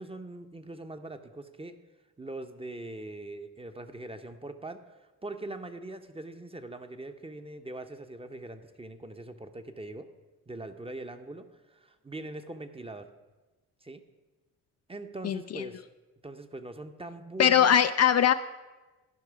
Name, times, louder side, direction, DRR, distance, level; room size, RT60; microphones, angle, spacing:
voice 1, 0.0-1.8 2.2-4.8 5.2-10.1 10.5-13.1 13.8-14.0 14.9-15.8 16.2-17.7, right 2 dB, 15° right, 8 dB, 0.8 m, -42 dB
voice 2, 15.2-15.6 17.4-18.3, left 9 dB, 45° left, 10 dB, 0.4 m, -21 dB
13.5 x 5.4 x 5.1 m, 1.2 s
supercardioid pair, 55°, 36 cm